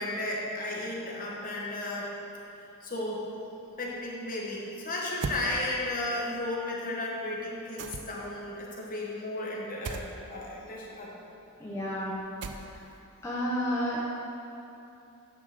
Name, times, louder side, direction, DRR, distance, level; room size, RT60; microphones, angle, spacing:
voice 1, 0.0-2.1 2.8-3.3 3.8-11.2, left 1 dB, 40° left, -4 dB, 1.4 m, -34 dB
sound 1, 5.2-5.5 7.8-8.3 9.8-10.1 12.4-12.9, right 4 dB, 55° right, 0.5 m, -36 dB
voice 2, 11.6-12.1 13.2-14.0, equal, 15° left, -7 dB, 1.0 m, -30 dB
9.6 x 3.7 x 6.6 m, 2.8 s
head